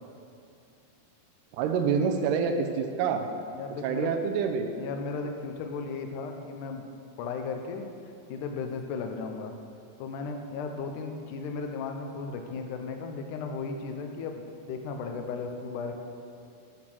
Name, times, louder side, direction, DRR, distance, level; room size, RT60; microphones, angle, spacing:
voice 1, 1.5-3.3 3.8-4.7, right 6 dB, 85° right, 5 dB, 2.8 m, -27 dB
voice 2, 3.5-4.1 4.7-6.8 7.2-7.9 8.3-9.6 10.0-15.9, left 4 dB, 85° left, 4 dB, 1.8 m, -35 dB
12.0 x 6.1 x 6.2 m, 2.5 s
omnidirectional pair, 4.7 m